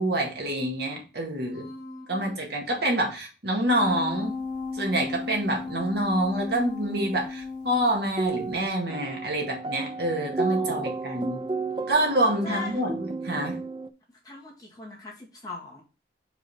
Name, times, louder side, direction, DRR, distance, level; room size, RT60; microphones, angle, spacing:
voice 1, 0.0-1.7 2.1-4.4 4.7-11.4 11.9-13.6, right 1 dB, 55° right, 0 dB, 1.9 m, -27 dB
voice 2, 1.4-2.4 10.6-11.3 12.4-12.8 14.2-15.8, left 3 dB, 20° left, -3 dB, 1.9 m, -40 dB
sound 1, 3.7-8.2 8.6-8.7, left 4 dB, 45° left, 0.7 m, -35 dB
sound 2, 8.0-13.9, right 4 dB, 25° right, 0.3 m, -32 dB
4.8 x 4.1 x 5.4 m, 0.32 s
head